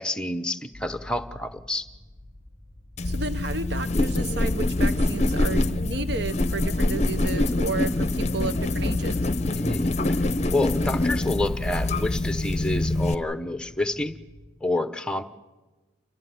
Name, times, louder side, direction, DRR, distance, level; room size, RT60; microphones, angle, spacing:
voice 1, 0.0-1.9 9.5-10.2 10.5-14.2 14.6-15.2, left 2 dB, 5° left, 10 dB, 0.9 m, -28 dB
sound 1, 0.7-14.5, left 1 dB, 80° right, 4.4 m, -47 dB
sound 2, 3.0-13.1, left 2 dB, 35° left, 0.7 m, -25 dB
voice 2, 3.0-9.2, right 3 dB, 55° right, 12 dB, 1.1 m, -32 dB
28.5 x 13.5 x 9.4 m, 1.2 s
head